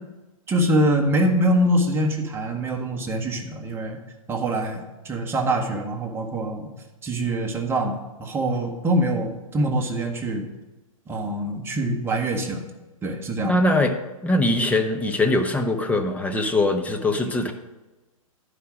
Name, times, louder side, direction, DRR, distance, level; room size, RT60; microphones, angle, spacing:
voice 1, 0.5-4.0 4.3-6.7 7.0-10.5 11.1-12.6 13.0-13.6, right 1 dB, 15° right, 1 dB, 1.3 m, -24 dB
voice 2, 13.4-13.9 14.2-17.5, left 2 dB, 10° left, 5 dB, 0.8 m, -22 dB
11.0 x 5.1 x 6.1 m, 1.1 s
hypercardioid pair, 120°, 18 cm